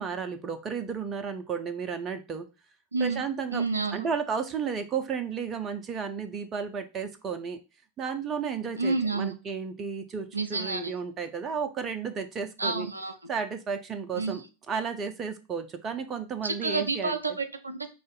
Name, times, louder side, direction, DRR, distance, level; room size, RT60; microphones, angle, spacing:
voice 1, 0.0-2.5 3.0-3.6 3.9-7.6 8.0-12.9 13.3-14.4 14.7-17.2, right 6 dB, 25° right, 8 dB, 0.6 m, -33 dB
voice 2, 2.9-3.2 3.5-4.1 8.7-9.4 10.3-10.9 12.6-13.3 14.1-14.4 16.4-17.9, right 3 dB, 80° right, 7 dB, 0.5 m, -29 dB
4.9 x 2.6 x 3.8 m, 0.30 s
figure-of-eight pair, 90°, 0 cm